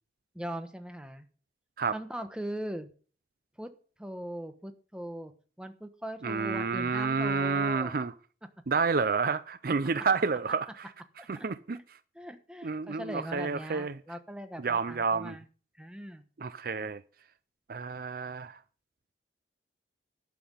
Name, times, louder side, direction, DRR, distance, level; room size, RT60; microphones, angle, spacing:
voice 1, 0.3-1.3 1.9-2.9 3.6-3.7 4.0-5.3 5.6-7.9 11.2-11.5 12.1-15.4 15.8-16.2, right 1 dB, 5° right, 1.2 m, -40 dB
voice 2, 6.2-8.1 8.7-10.9 11.3-11.8 12.6-14.0 14.6-15.3 16.4-17.0 17.7-18.6, right 4 dB, 55° right, 0.5 m, -29 dB
11.5 x 6.0 x 7.6 m
head